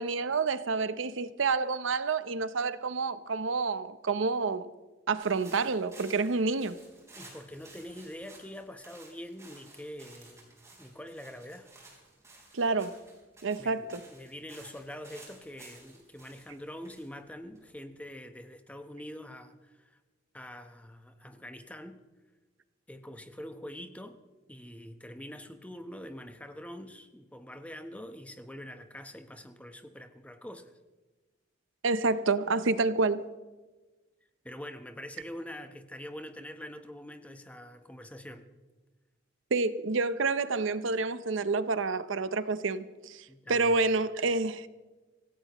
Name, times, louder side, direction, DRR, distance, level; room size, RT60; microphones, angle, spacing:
voice 1, 0.0-4.7 5.1-6.8 12.5-13.0 13.4-14.0 31.8-33.3 39.5-44.7, right 4 dB, 80° right, 0.7 m, -28 dB
sound 1, 5.2-18.0, right 2 dB, 15° right, 4.4 m, -55 dB
voice 2, 7.1-11.7 13.6-20.0 20.3-22.0 22.9-24.2 24.5-30.7 34.4-38.5 43.3-43.8, left 1 dB, 5° left, 0.9 m, -45 dB
25.5 x 16.5 x 3.0 m
head